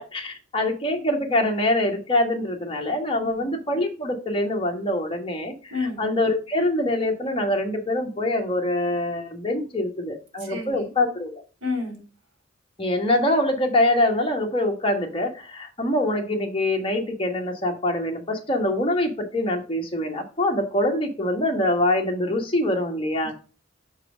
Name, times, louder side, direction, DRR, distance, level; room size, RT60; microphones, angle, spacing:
voice 1, 0.0-5.5 6.0-11.4 12.8-23.3, left 1 dB, 25° left, 2 dB, 1.4 m, -24 dB
voice 2, 3.2-3.5 5.7-6.1 10.4-10.9 11.6-12.0, left 3 dB, 75° right, 3 dB, 3.4 m, -30 dB
6.0 x 4.7 x 4.9 m, 0.35 s
head